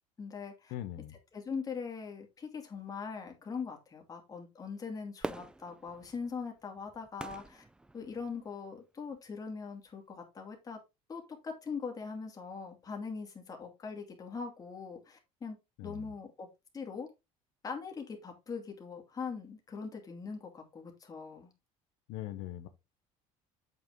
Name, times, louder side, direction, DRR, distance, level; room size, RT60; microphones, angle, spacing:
voice 1, 0.2-0.7 1.3-7.6 7.9-10.8 11.1-15.6 15.8-16.5 16.7-17.1 17.6-21.5, left 5 dB, 25° left, 2.5 m, -41 dB
voice 2, 0.7-1.2 15.8-16.1 22.1-22.7, left 13 dB, 85° left, 0.9 m, -41 dB
Fireworks, 5.2-8.5 9.1-9.2, right 2 dB, 5° right, 0.5 m, -44 dB
8.0 x 5.5 x 3.7 m
cardioid pair, 125°, 13 cm